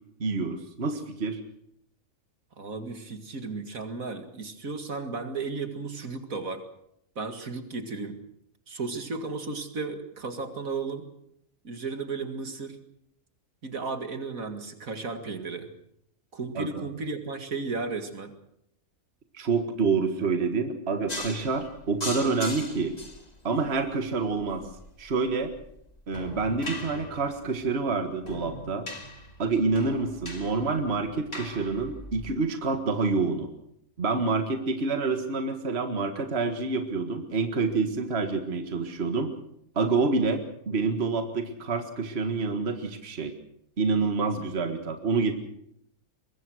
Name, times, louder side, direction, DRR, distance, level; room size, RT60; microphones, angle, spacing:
voice 1, 0.2-1.4 16.6-16.9 19.3-23.0 23.4-24.6 25.0-25.5 26.1-28.9 29.4-33.5 34.0-39.3 39.8-43.3 43.8-45.3, right 4 dB, 45° right, 7 dB, 1.9 m, -27 dB
voice 2, 2.6-6.7 7.2-8.2 8.7-11.1 11.6-12.8 13.6-15.7 16.3-18.3, right 4 dB, 65° right, 8 dB, 2.5 m, -34 dB
sound 1, 21.1-32.3, left 1 dB, 25° left, 2.6 m, -41 dB
23.5 x 21.5 x 6.4 m, 0.74 s
omnidirectional pair, 1.6 m